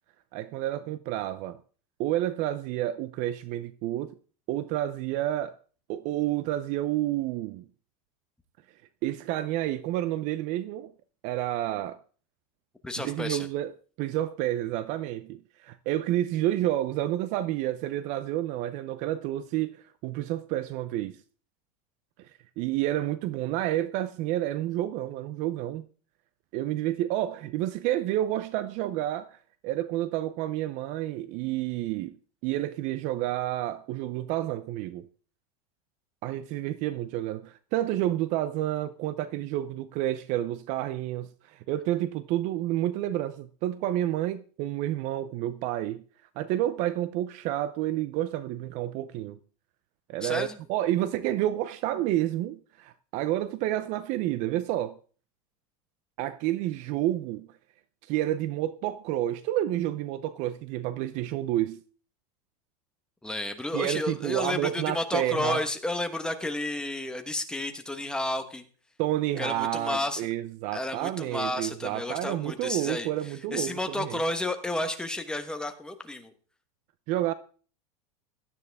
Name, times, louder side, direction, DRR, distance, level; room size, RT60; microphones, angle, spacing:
voice 1, 0.3-1.6 2.0-4.1 4.5-5.6 5.9-7.7 9.0-10.9 11.2-12.0 13.0-13.7 14.0-21.2 22.6-25.8 26.5-29.4 29.6-32.1 32.4-35.1 36.2-46.0 46.4-49.4 50.1-55.0 56.2-57.5 58.1-61.8 63.7-65.6 69.0-74.2 77.1-77.3, right 13 dB, 40° right, 0.6 m, -29 dB
voice 2, 12.8-13.5 50.2-50.6 63.2-68.6 69.4-70.3 70.7-76.3, left 2 dB, 5° left, 1.2 m, -31 dB
16.5 x 12.5 x 3.5 m
supercardioid pair, 155°, 19 cm